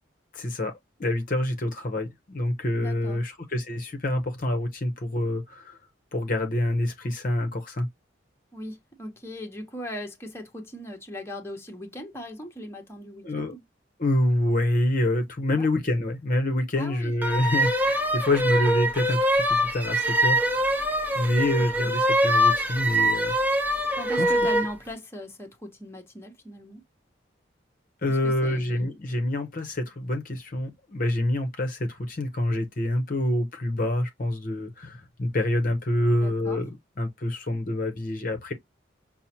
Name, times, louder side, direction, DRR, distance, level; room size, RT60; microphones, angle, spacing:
voice 1, 0.3-5.8 6.1-7.9 13.2-13.6 14.0-20.5 21.1-23.3 24.2-24.3 28.0-38.5, left 1 dB, 45° left, 0.7 m, -27 dB
voice 2, 2.8-3.2 8.5-13.6 15.5-15.7 16.8-17.1 21.8-21.9 23.9-26.8 28.1-28.9 36.2-36.6, equal, 15° left, 0.9 m, -39 dB
sound 1, 17.2-24.7, equal, 10° right, 0.6 m, -24 dB
5.5 x 2.1 x 2.8 m
head